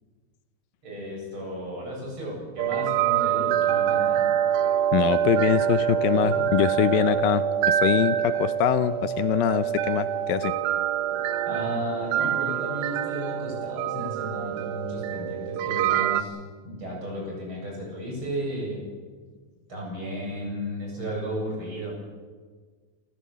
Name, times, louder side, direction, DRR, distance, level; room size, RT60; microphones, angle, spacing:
voice 1, 0.8-4.3 6.2-6.4 11.5-16.4 16.6-18.8 19.7-21.9, equal, 35° right, -2 dB, 8.8 m, -34 dB
sound 1, 2.6-16.2, right 10 dB, 85° right, 2.7 m, -25 dB
voice 2, 4.9-10.5, left 11 dB, 80° left, 12 dB, 2.5 m, -24 dB
29.0 x 14.5 x 8.6 m, 1.5 s
omnidirectional pair, 4.0 m